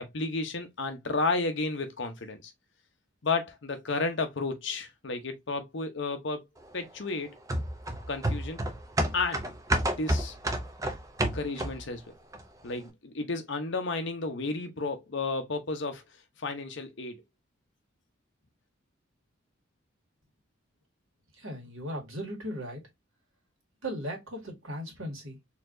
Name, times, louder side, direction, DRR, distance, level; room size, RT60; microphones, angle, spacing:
voice 1, 0.0-2.5 3.2-6.5 6.7-7.4 8.1-8.6 9.1-9.4 9.8-10.3 11.3-12.1 12.6-16.0 16.4-17.2, left 3 dB, 60° left, 0.8 m, -32 dB
sound 1, 7.5-12.0 12.3-12.4, right 1 dB, 15° right, 0.5 m, -30 dB
voice 2, 21.3-22.8 23.8-25.4, equal, 80° right, 1.8 m, -37 dB
4.2 x 2.8 x 2.5 m
head